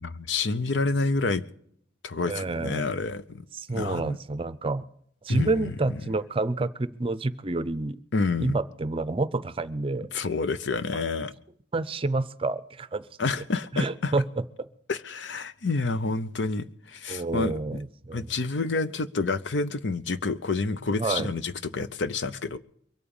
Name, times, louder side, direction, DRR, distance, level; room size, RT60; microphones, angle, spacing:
voice 1, 0.0-1.4 2.0-3.4 3.7-4.2 5.3-6.0 8.1-8.6 10.1-11.3 13.2-14.1 14.9-17.6 18.1-22.6, left 3 dB, 75° left, 0.8 m, -28 dB
voice 2, 2.3-2.9 3.5-4.8 5.2-8.0 8.4-10.1 11.7-13.1 13.7-14.2 14.6-14.7 17.1-18.3 21.0-21.3, right 2 dB, 30° right, 0.6 m, -28 dB
23.0 x 8.8 x 7.1 m
head